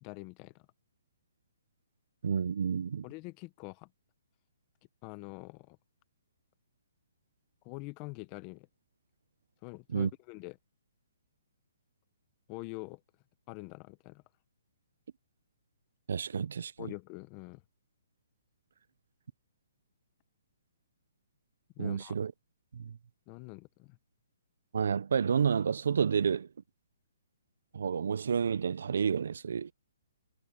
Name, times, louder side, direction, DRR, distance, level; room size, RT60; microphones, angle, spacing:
voice 1, 0.0-0.5 3.0-3.9 5.0-5.8 7.6-8.7 9.6-10.6 12.5-13.0 13.5-14.2 16.8-17.6 21.8-22.2 23.3-24.0, left 24 dB, 25° left, 0.8 m, -45 dB
voice 2, 2.2-3.0 9.9-10.1 16.1-16.9 21.8-22.3 22.7-23.0 24.7-26.5 27.7-29.7, right 6 dB, 70° right, 0.5 m, -30 dB
hypercardioid pair, 165°, 0 cm